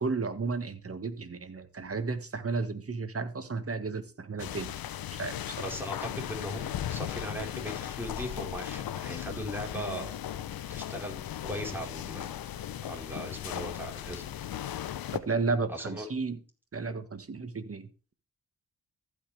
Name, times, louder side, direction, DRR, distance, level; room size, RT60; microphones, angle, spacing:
voice 1, 0.0-4.7 5.2-5.7 15.1-16.4 16.7-17.9, right 4 dB, 40° right, 10 dB, 1.7 m, -33 dB
sound 1, 4.4-15.2, left 11 dB, 70° left, 0.8 m, -37 dB
voice 2, 5.6-10.1 10.7-12.4 12.8-14.3 15.7-16.1, equal, 5° right, 0 dB, 4.6 m, -38 dB
15.0 x 5.9 x 3.5 m, 0.34 s
supercardioid pair, 50°, 37 cm